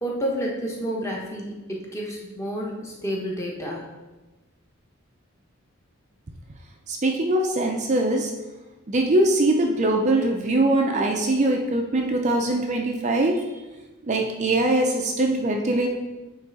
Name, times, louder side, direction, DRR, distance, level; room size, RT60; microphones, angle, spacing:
voice 1, 0.0-3.8, equal, 15° left, -2 dB, 1.0 m, -30 dB
voice 2, 6.9-8.3 8.9-13.4 14.1-15.9, right 2 dB, 35° right, 2 dB, 0.5 m, -22 dB
9.0 x 3.2 x 4.0 m, 1.1 s
head